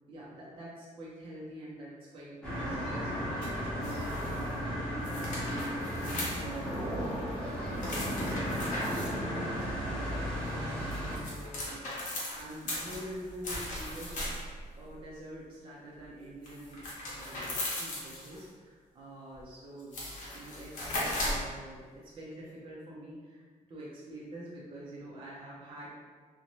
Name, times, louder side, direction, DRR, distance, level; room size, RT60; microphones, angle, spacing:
voice 1, 0.1-3.3 3.9-7.4 7.8-14.3 14.7-16.8 17.1-20.0 20.3-25.9, right 1 dB, 40° right, -6 dB, 0.5 m, -46 dB
sound 1, 2.4-11.2, equal, 5° left, 0.9 m, -34 dB
sound 2, 3.8-4.4 5.0-6.7 7.8-9.1 10.7-14.6 16.4-18.4 19.4-19.5 19.8-21.5, left 1 dB, 65° left, 0.8 m, -37 dB
2.6 x 2.1 x 2.9 m, 1.5 s
wide cardioid pair, 160°, 14 cm